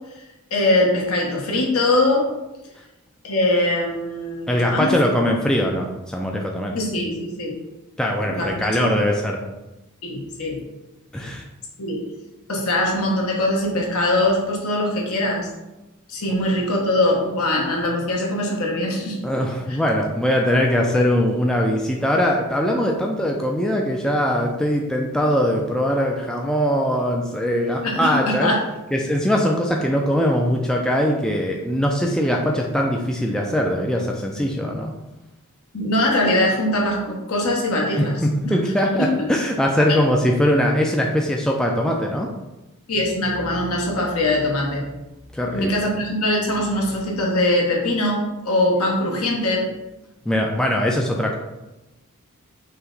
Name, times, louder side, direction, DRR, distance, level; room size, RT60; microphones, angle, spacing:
voice 1, 0.5-2.3 3.2-4.9 6.7-7.6 8.3-8.9 10.0-10.6 11.2-11.3 11.8-12.0 12.5-15.5 16.1-19.2 27.8-28.5 35.7-38.1 38.4-38.5 39.0-39.3 42.9-44.9 45.5-49.7, left 1 dB, 75° left, -2 dB, 1.1 m, -22 dB
voice 2, 4.5-6.8 8.0-9.4 11.1-11.4 19.2-28.5 28.9-34.9 38.0-42.3 45.3-45.7 50.3-51.4, equal, 5° left, 0 dB, 0.3 m, -21 dB
5.5 x 2.2 x 3.9 m, 1.0 s
head